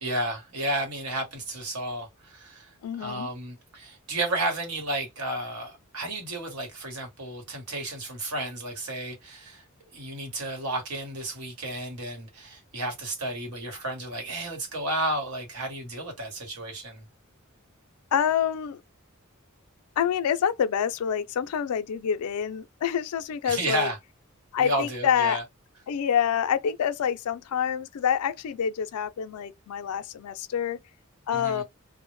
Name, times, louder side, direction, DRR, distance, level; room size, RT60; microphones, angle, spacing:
voice 1, 0.0-9.6 9.9-17.0 23.4-24.0 24.6-25.4 31.3-31.6, right 1 dB, 90° right, 1.1 m, -32 dB
voice 2, 2.8-3.3 18.1-18.8 20.0-23.9 24.5-25.4 25.9-30.8 31.3-31.6, left 8 dB, 85° left, 0.3 m, -27 dB
2.0 x 2.0 x 3.0 m
head